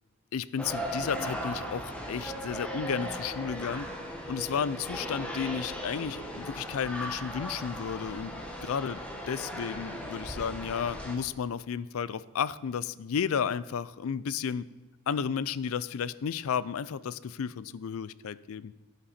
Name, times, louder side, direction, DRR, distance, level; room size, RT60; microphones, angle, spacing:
voice 1, 0.3-3.9 4.3-8.3 8.6-9.0 9.3-14.6 15.1-18.7, left 7 dB, 65° left, 18 dB, 0.4 m, -33 dB
sound 1, 0.6-11.2, equal, 5° left, 1.4 m, -37 dB
10.5 x 10.0 x 4.3 m, 1.3 s
head